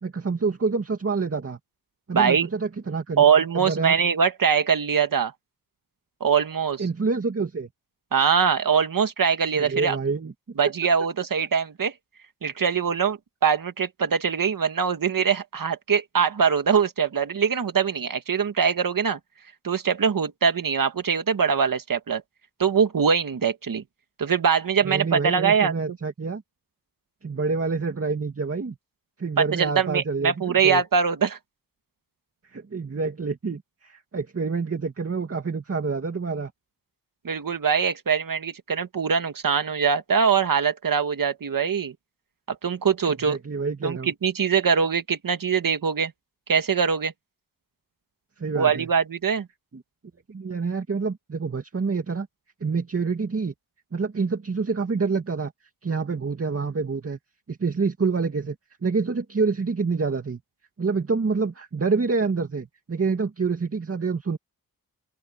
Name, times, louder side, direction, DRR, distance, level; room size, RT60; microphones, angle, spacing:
voice 1, 0.0-1.6 2.1-3.2 3.5-4.0 6.8-7.7 9.5-10.3 24.8-26.4 27.2-28.8 29.2-30.8 32.4-36.5 43.1-44.1 48.4-48.9 49.7-49.8 50.3-52.3 52.6-53.5 53.9-55.5 55.8-57.2 57.5-58.6 58.8-60.4 60.8-64.4, right 4 dB, 40° right, 2.3 m, -27 dB
voice 2, 2.1-2.5 3.2-5.3 6.2-6.8 8.1-10.0 10.6-11.9 12.4-19.2 19.6-22.2 22.6-23.8 24.2-25.7 29.4-31.4 37.2-41.9 42.6-43.4 43.8-46.1 46.5-47.1 48.5-49.5, right 6 dB, 65° right, 1.7 m, -22 dB
open air
wide cardioid pair, 130°, 36 cm